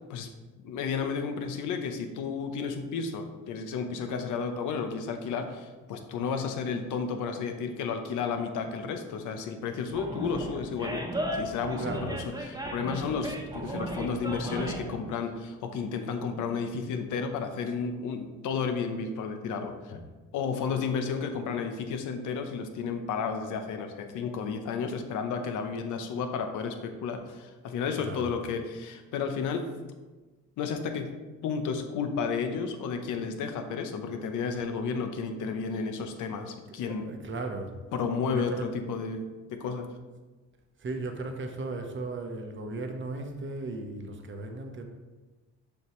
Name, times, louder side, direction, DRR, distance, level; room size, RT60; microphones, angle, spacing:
voice 1, 0.6-20.1 20.3-29.7 30.6-31.1 31.4-37.1 37.9-39.9, left 5 dB, 85° left, 6 dB, 0.8 m, -32 dB
Animal, 9.9-15.0, right 1 dB, 10° right, 1.0 m, -35 dB
voice 2, 11.8-12.1 28.0-28.4 36.7-37.7 38.3-38.7 40.8-44.8, right 3 dB, 40° right, 4 dB, 1.0 m, -36 dB
6.9 x 5.3 x 3.1 m, 1.2 s
cardioid pair, 90°, 30 cm